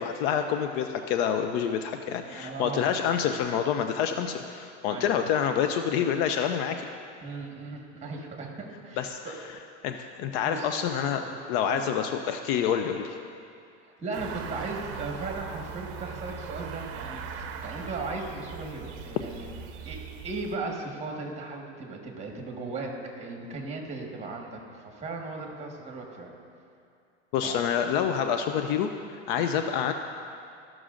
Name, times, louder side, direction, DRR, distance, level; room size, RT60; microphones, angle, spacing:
voice 1, 0.0-6.9 9.0-9.2 9.8-11.2 11.5-13.2 27.3-29.9, left 8 dB, 55° left, 7 dB, 0.5 m, -27 dB
voice 2, 2.3-2.8 4.9-5.2 7.2-9.3 10.4-10.8 11.2-11.4 11.7-11.8 13.8-19.5 19.8-20.0 20.2-26.3 27.4-27.6 29.3-29.5, right 3 dB, 20° right, 1 dB, 1.5 m, -37 dB
sound 1, 14.1-20.6, right 6 dB, 40° right, 0.7 m, -40 dB
14.0 x 6.1 x 2.5 m, 2.4 s
hypercardioid pair, 110°, 37 cm